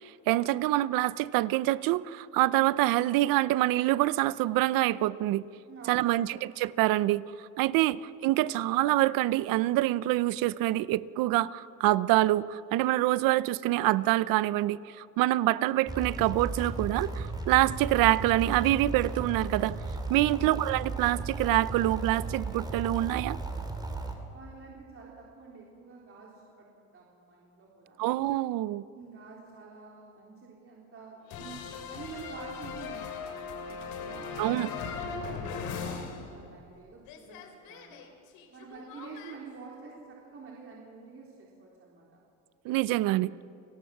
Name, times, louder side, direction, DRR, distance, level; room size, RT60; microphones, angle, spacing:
voice 1, 0.3-5.4 5.9-19.8 20.1-23.4 28.0-28.8 34.4-34.7 42.6-43.3, right 16 dB, 70° right, 18 dB, 0.7 m, -26 dB
voice 2, 5.7-6.3 20.2-20.5 24.3-28.0 28.9-33.5 34.0-38.1 38.5-42.2, right 5 dB, 35° right, -3 dB, 3.7 m, -48 dB
sound 1, 15.9-24.2, right 3 dB, 10° right, 2.9 m, -35 dB
sound 2, 31.3-36.8 37.0-39.4, left 5 dB, 75° left, 3.3 m, -39 dB
29.5 x 18.5 x 7.3 m, 2.5 s
cardioid pair, 130°, 35 cm